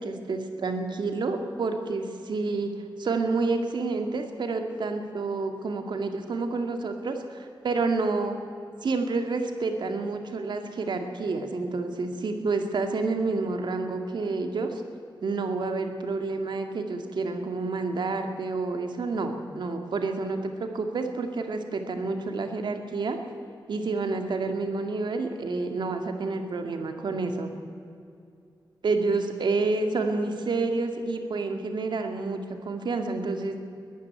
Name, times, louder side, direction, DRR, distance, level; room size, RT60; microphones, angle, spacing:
voice 1, 0.0-2.7 3.0-8.4 8.8-14.8 15.2-23.2 23.7-27.5 28.8-33.6, right 3 dB, 70° right, 6 dB, 2.2 m, -29 dB
21.0 x 14.5 x 9.5 m, 2.5 s
wide cardioid pair, 175°, 8 cm